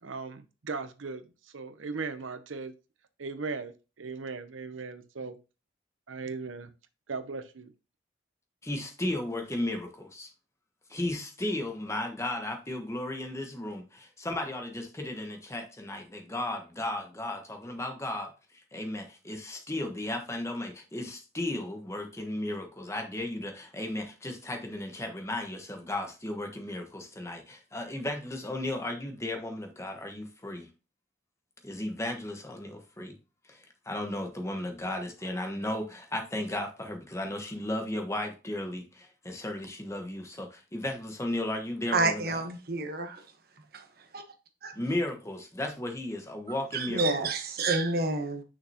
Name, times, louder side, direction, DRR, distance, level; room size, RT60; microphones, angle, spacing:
voice 1, 0.0-2.7 3.2-5.4 6.1-6.7 7.1-7.7, right 4 dB, 90° right, 0.8 m, -38 dB
voice 2, 8.6-10.3 10.9-18.3 18.7-30.7 31.6-33.2 33.5-42.4 44.7-47.3, left 1 dB, 15° left, 1.2 m, -35 dB
voice 3, 41.9-43.2 43.7-43.8 44.1-44.2 44.6-44.7 46.7-48.4, right 3 dB, 50° right, 1.1 m, -29 dB
6.3 x 6.1 x 2.9 m
head